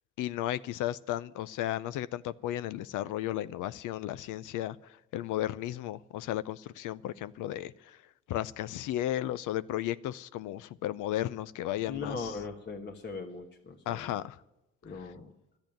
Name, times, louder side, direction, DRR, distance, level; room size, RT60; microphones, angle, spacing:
voice 1, 0.2-8.0 8.3-12.3 13.9-14.4, left 13 dB, 85° left, 0.5 m, -34 dB
voice 2, 11.9-14.1 14.8-15.3, left 4 dB, 35° left, 1.3 m, -39 dB
12.0 x 8.8 x 9.2 m
cardioid pair, 90°, 30 cm